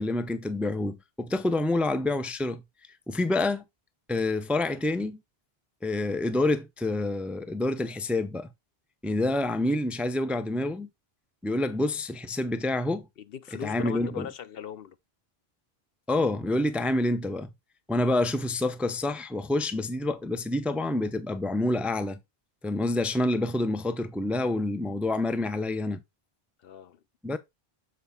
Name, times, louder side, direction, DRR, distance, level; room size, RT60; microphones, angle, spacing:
voice 1, 0.0-2.6 3.1-3.6 4.1-5.2 5.8-8.5 9.0-10.9 11.4-13.1 13.6-14.3 16.1-17.5 17.9-22.2 22.6-26.0 27.2-27.4, left 2 dB, ahead, 0.5 m, -27 dB
voice 2, 13.2-15.0 26.6-27.0, left 8 dB, 70° left, 0.9 m, -39 dB
7.4 x 4.6 x 4.1 m
omnidirectional pair, 1.1 m